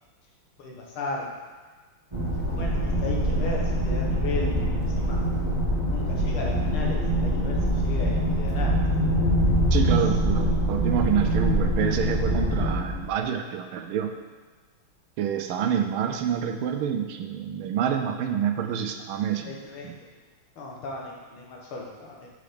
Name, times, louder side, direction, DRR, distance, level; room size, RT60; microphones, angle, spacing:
voice 1, 0.6-1.3 2.3-4.5 5.0-5.2 5.9-8.8 19.5-20.0 20.6-22.3, left 2 dB, 75° left, -1 dB, 2.0 m, -35 dB
sound 1, 2.1-13.0, equal, 20° right, 1.0 m, -24 dB
voice 2, 9.7-14.1 15.2-19.5 19.8-19.9, right 8 dB, 80° right, 6 dB, 1.4 m, -27 dB
6.7 x 5.0 x 5.1 m, 1.3 s
omnidirectional pair, 2.4 m